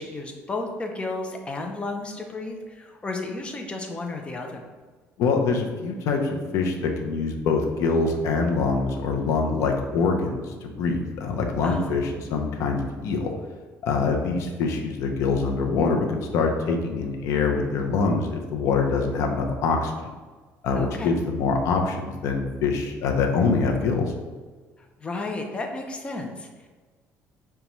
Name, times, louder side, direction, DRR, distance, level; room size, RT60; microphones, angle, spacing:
voice 1, 0.0-4.6 11.6-12.1 20.8-21.1 25.0-26.7, left 3 dB, 20° left, 3 dB, 0.5 m, -33 dB
voice 2, 5.2-13.3 13.8-19.9 20.6-24.1, left 4 dB, 70° left, 2 dB, 0.5 m, -24 dB
5.2 x 2.2 x 3.0 m, 1.4 s
cardioid pair, 140°, 5 cm